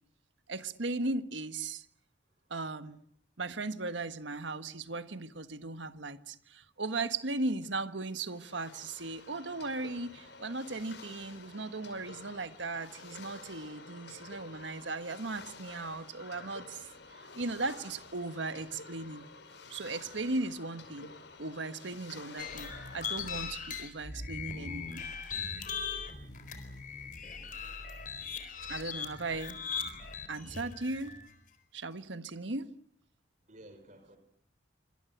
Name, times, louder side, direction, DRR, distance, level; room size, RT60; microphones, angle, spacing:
voice 1, 0.5-1.9 2.5-3.0 3.4-16.9 17.3-19.2 19.7-21.1 21.4-25.0 28.7-29.6 30.3-31.2 31.7-32.7, right 3 dB, 80° right, 11 dB, 1.5 m, -37 dB
sound 1, 8.0-23.2, left 4 dB, 75° left, 5.0 m, -50 dB
sound 2, 22.4-31.3, left 6 dB, 45° left, 4.2 m, -39 dB
voice 2, 26.9-27.4 33.5-34.2, right 1 dB, 40° right, 9 dB, 4.4 m, -55 dB
27.0 x 25.5 x 8.1 m, 0.66 s
head